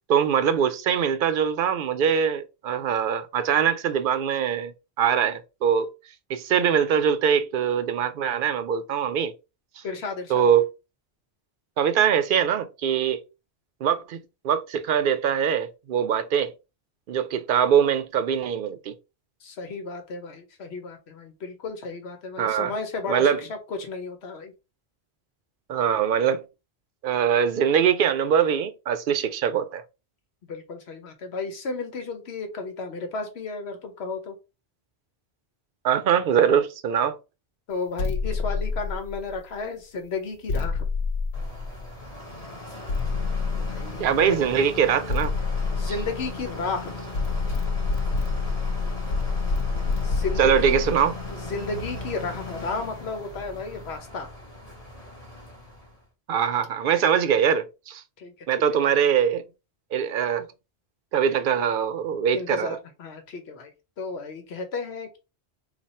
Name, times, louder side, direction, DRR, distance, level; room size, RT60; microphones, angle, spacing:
voice 1, 0.1-5.9 6.3-9.3 9.8-9.9 10.3-10.7 11.8-13.2 13.8-16.5 17.1-18.9 22.4-22.7 23.1-23.4 25.7-26.4 27.0-29.8 35.8-37.2 44.0-45.3 45.9-46.0 50.4-51.1 56.3-58.0 58.5-59.4 59.9-60.5 61.1-62.8, right 8 dB, 60° right, 0.7 m, -22 dB
voice 2, 9.8-10.5 19.4-24.5 30.4-34.4 37.7-40.8 43.6-44.4 45.8-46.9 50.0-50.8 51.3-54.3 58.2-58.5 58.9-59.0 62.3-63.7 64.0-65.2, left 4 dB, 85° left, 1.1 m, -33 dB
sound 1, 38.0-39.5 40.5-42.1 42.9-44.2 45.1-46.7 47.1-52.4, left 4 dB, 65° left, 0.7 m, -28 dB
sound 2, 41.3-56.0, left 2 dB, 35° left, 1.2 m, -38 dB
3.3 x 2.3 x 4.2 m
omnidirectional pair, 1.1 m